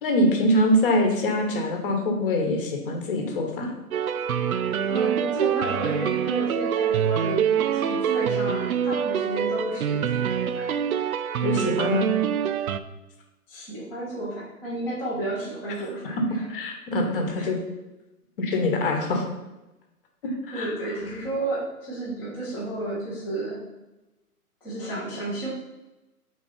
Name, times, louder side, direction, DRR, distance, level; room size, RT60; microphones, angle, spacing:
voice 1, 0.0-3.7 11.4-12.2 16.5-17.6 18.4-19.3 20.5-20.7, left 1 dB, 35° left, 2 dB, 1.2 m, -24 dB
sound 1, 3.9-12.8, right 8 dB, 65° right, 0.5 m, -25 dB
voice 2, 4.9-10.7 13.5-16.5 17.4-17.5 20.5-23.6 24.6-25.5, right 2 dB, 5° left, -10 dB, 0.7 m, -32 dB
4.5 x 4.0 x 5.7 m, 1.0 s
hypercardioid pair, 150°, 47 cm